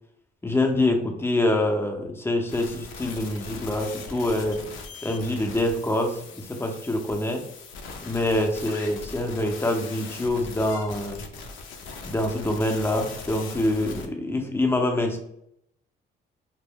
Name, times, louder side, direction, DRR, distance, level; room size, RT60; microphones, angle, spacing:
voice 1, 0.4-4.6 5.0-7.4 8.0-11.3 12.0-15.2, left 1 dB, 10° left, 3 dB, 0.5 m, -25 dB
sound 1, 2.5-14.1, left 4 dB, 80° left, 0.5 m, -40 dB
2.1 x 2.1 x 3.5 m, 0.73 s
cardioid pair, 90°, 20 cm